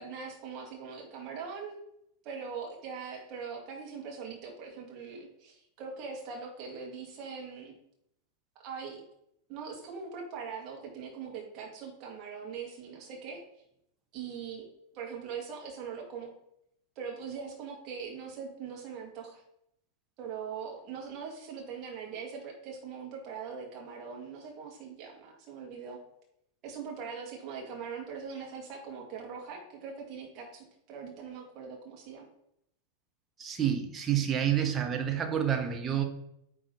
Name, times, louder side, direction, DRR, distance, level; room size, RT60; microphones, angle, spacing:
voice 1, 0.0-1.8 2.2-7.7 8.6-9.0 9.5-13.4 14.1-14.6 14.9-16.3 17.0-19.4 20.2-26.0 26.6-32.3, right 6 dB, 40° right, -1 dB, 2.1 m, -41 dB
voice 2, 33.4-36.0, right 9 dB, 20° right, 5 dB, 1.0 m, -28 dB
9.6 x 3.7 x 3.4 m, 0.76 s
figure-of-eight pair, 90°, 0 cm